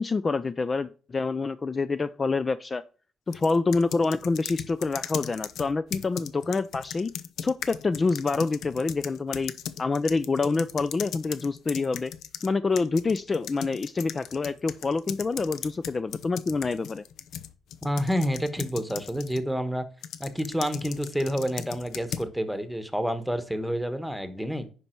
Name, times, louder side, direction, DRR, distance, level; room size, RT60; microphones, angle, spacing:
voice 1, 0.0-2.8 3.3-7.1 7.4-9.5 9.8-12.1 12.4-17.0, left 4 dB, 30° left, 14 dB, 0.4 m, -27 dB
sound 1, 3.3-12.5 12.8-19.4 20.0-22.3, left 9 dB, 80° left, 0.7 m, -38 dB
voice 2, 17.8-19.9 20.2-24.7, equal, ahead, 11 dB, 1.2 m, -29 dB
9.6 x 5.5 x 4.5 m, 0.38 s
cardioid pair, 90°, 0 cm